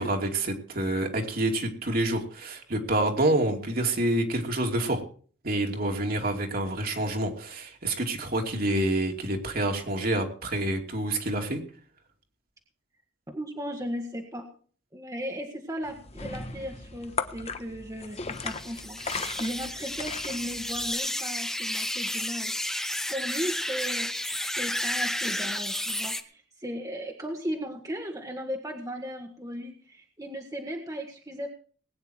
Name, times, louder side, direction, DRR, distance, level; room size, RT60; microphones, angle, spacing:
voice 1, 0.0-5.0 5.4-11.6, right 1 dB, 50° right, 3 dB, 2.7 m, -27 dB
voice 2, 13.3-14.5 14.9-24.1 24.6-31.5, equal, 20° right, 2 dB, 1.6 m, -36 dB
sound 1, 15.8-20.9, left 4 dB, 35° left, 1.1 m, -37 dB
sound 2, 18.3-26.2, left 1 dB, ahead, 0.9 m, -32 dB
20.0 x 9.5 x 4.5 m, 0.44 s
head